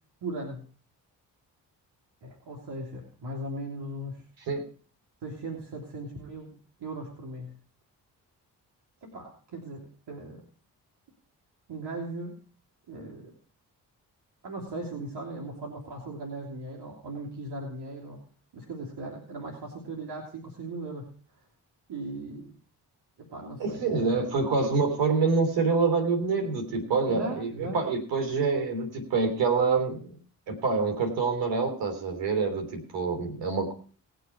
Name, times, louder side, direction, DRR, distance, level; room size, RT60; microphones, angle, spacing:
voice 1, 0.2-0.6 2.2-4.2 5.2-7.5 9.0-10.4 11.7-12.4 12.9-13.3 14.4-18.2 18.5-21.1 21.9-22.5 23.2-24.2 27.1-27.8, right 2 dB, 70° right, -1 dB, 3.2 m, -38 dB
voice 2, 23.6-30.1 30.5-33.7, right 4 dB, 85° right, 5 dB, 3.1 m, -26 dB
19.0 x 6.9 x 4.5 m, 0.42 s
supercardioid pair, 50°, 43 cm